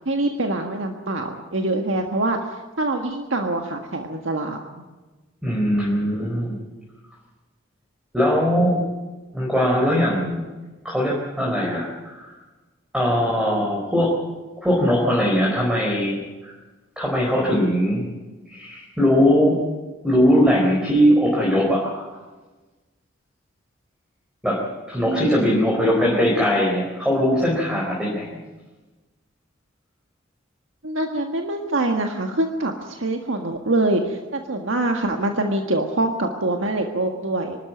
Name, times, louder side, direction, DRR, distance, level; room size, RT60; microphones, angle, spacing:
voice 1, 0.1-2.4 2.8-4.8 25.1-25.7 30.8-37.6, right 2 dB, 80° right, 4 dB, 1.6 m, -24 dB
voice 2, 5.4-6.5 8.1-8.8 9.3-10.5 10.8-12.3 12.9-14.1 14.6-16.5 17.0-18.1 18.5-19.6 20.0-22.1 24.4-24.6 24.9-28.3, equal, 5° right, -4 dB, 4.2 m, -20 dB
24.5 x 12.5 x 9.4 m, 1.2 s
head